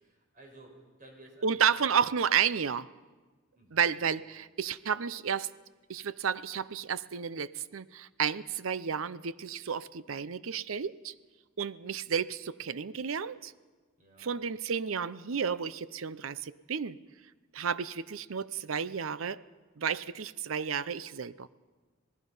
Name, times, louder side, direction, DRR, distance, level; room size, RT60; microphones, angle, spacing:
voice 1, 0.0-1.8 3.5-4.0 14.0-14.3, right 2 dB, 40° right, 2 dB, 4.9 m, -55 dB
voice 2, 1.4-2.9 3.7-5.5 5.9-11.1 11.6-13.5 14.2-17.0 17.5-19.4 19.8-21.5, right 7 dB, 80° right, 17 dB, 0.6 m, -31 dB
26.5 x 18.5 x 5.5 m, 1.3 s
head